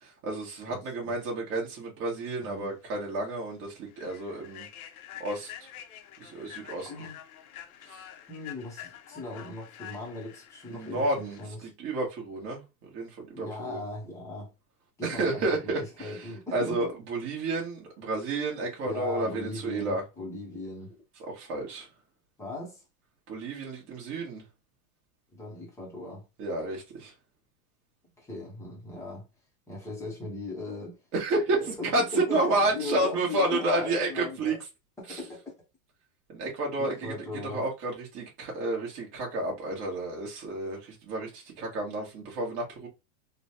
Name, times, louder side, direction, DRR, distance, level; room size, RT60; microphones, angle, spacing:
voice 1, 0.0-4.7 5.2-5.7 6.2-6.9 7.8-8.1 10.7-13.8 15.0-20.0 21.2-21.9 23.3-24.4 26.4-27.1 31.1-34.6 35.1-35.2 36.3-42.9, right 2 dB, 30° right, 1.1 m, -31 dB
voice 2, 0.7-1.1 2.4-2.7 6.8-7.2 8.3-11.6 13.3-14.5 15.0-15.7 16.0-16.9 18.8-21.0 22.4-22.8 25.3-26.2 28.2-29.2 29.7-31.0 31.5-34.6 35.0-35.5 36.8-37.6, left 2 dB, 5° left, 0.7 m, -38 dB
Human voice / Train, 2.6-2.7 3.2-3.4 3.9-11.5, left 11 dB, 70° left, 0.7 m, -47 dB
3.1 x 2.2 x 2.7 m
supercardioid pair, 155°, 45 cm